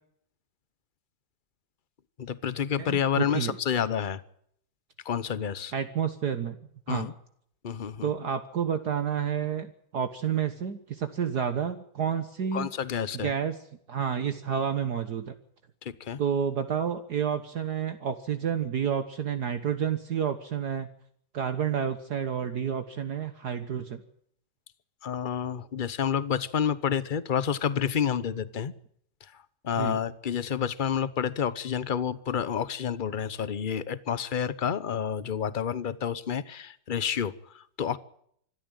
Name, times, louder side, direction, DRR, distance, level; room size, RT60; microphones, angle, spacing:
voice 1, 2.2-4.2 5.0-5.7 6.9-7.1 7.6-8.1 12.5-13.3 15.8-16.2 25.0-28.7 29.6-38.0, left 8 dB, 40° left, 17 dB, 0.8 m, -29 dB
voice 2, 2.8-3.6 5.7-6.6 6.9-7.1 8.0-12.7 13.1-13.6 13.9-15.4 16.2-20.9 21.3-24.0 29.8-30.0, right 8 dB, 60° right, 9 dB, 1.7 m, -30 dB
25.5 x 13.0 x 9.0 m, 0.68 s
omnidirectional pair, 2.0 m